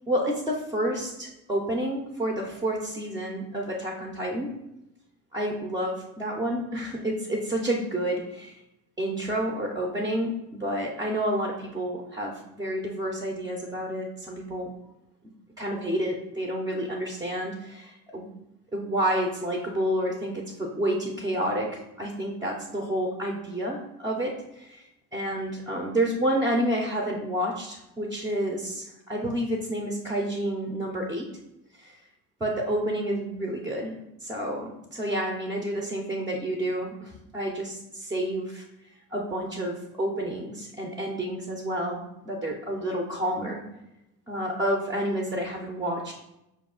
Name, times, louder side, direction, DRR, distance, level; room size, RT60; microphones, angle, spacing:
voice 1, 0.1-4.5 5.3-8.6 9.0-14.7 15.6-18.3 18.7-31.3 31.8-31.9 32.4-38.6 39.1-43.6 44.3-46.1, right 1 dB, 10° right, 0 dB, 0.3 m, -29 dB
4.9 x 2.3 x 3.6 m, 0.89 s
cardioid pair, 135°, 38 cm